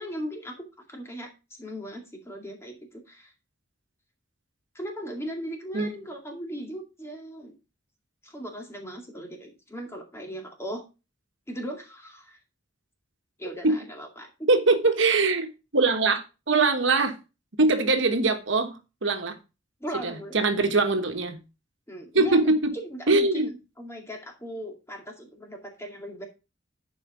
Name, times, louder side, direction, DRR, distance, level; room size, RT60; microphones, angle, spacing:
voice 1, 0.0-3.3 4.7-7.5 8.2-10.8 11.5-12.4 13.4-14.5 19.8-20.4 21.9-22.5 22.7-26.3, equal, 15° left, 2.2 m, -38 dB
voice 2, 14.5-15.5 15.7-16.2 16.5-17.2 17.6-19.4 20.0-21.4 22.1-22.7 23.1-23.5, right 3 dB, 70° right, 1.3 m, -22 dB
10.5 x 5.0 x 4.9 m
head